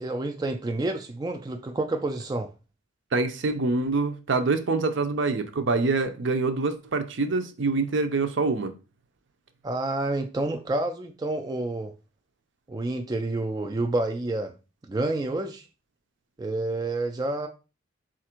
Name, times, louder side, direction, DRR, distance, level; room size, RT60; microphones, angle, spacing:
voice 1, 0.0-2.5 9.6-11.9 12.7-14.5 14.9-15.6 16.4-17.5, right 2 dB, 20° right, 0.3 m, -29 dB
voice 2, 3.1-8.7, right 3 dB, 65° right, 0.6 m, -25 dB
4.2 x 2.5 x 4.3 m
head